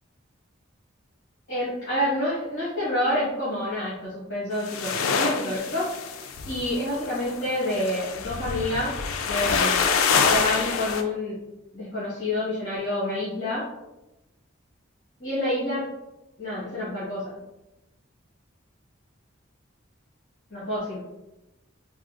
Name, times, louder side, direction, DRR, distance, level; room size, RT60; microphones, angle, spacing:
voice 1, 1.5-5.9 6.4-9.0 9.3-9.8 10.2-11.4 11.7-13.7 15.2-15.9 16.4-17.4 20.5-21.0, left 1 dB, 50° left, -11 dB, 1.2 m, -28 dB
sound 1, 4.5-11.0, left 5 dB, 85° left, 0.3 m, -26 dB
3.7 x 2.0 x 2.4 m, 0.98 s
head